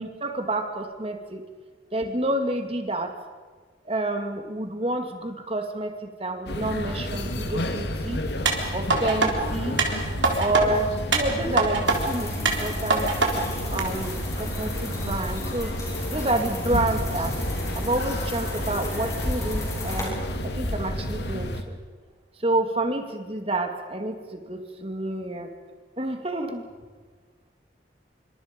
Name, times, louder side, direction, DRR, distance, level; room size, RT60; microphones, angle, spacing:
voice 1, 0.0-1.4 1.9-3.1 3.9-8.2 8.7-9.8 10.4-13.1 13.7-15.7 16.1-17.3 17.7-20.1 20.6-21.8 22.4-25.5 26.0-26.7, right 2 dB, 30° right, 5 dB, 2.2 m, -29 dB
sound 1, 6.5-21.6, left 1 dB, 65° left, 2.1 m, -30 dB
sound 2, 8.5-9.3 9.8-10.6 11.1-12.0 12.5-13.3 13.8-13.9, right 3 dB, 90° right, 3.7 m, -23 dB
sound 3, 11.9-20.0, left 2 dB, 20° left, 6.3 m, -36 dB
27.0 x 25.0 x 5.3 m, 1.5 s
head